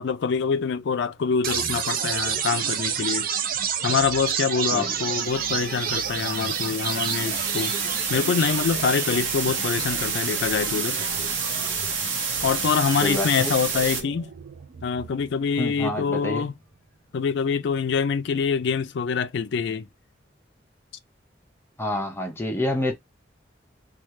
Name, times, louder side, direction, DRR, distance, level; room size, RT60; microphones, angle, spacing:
voice 1, 0.0-3.3 3.8-7.8 8.1-11.0 12.4-14.3 14.8-16.5 17.1-19.9, left 6 dB, 65° left, 0.4 m, -25 dB
sound 1, 1.4-15.4, right 7 dB, 50° right, 0.5 m, -31 dB
sound 2, 4.8-14.0, right 5 dB, 90° right, 0.8 m, -29 dB
voice 2, 13.0-13.5 15.6-16.5 21.8-22.9, left 1 dB, 15° left, 0.5 m, -27 dB
3.1 x 2.3 x 3.1 m
head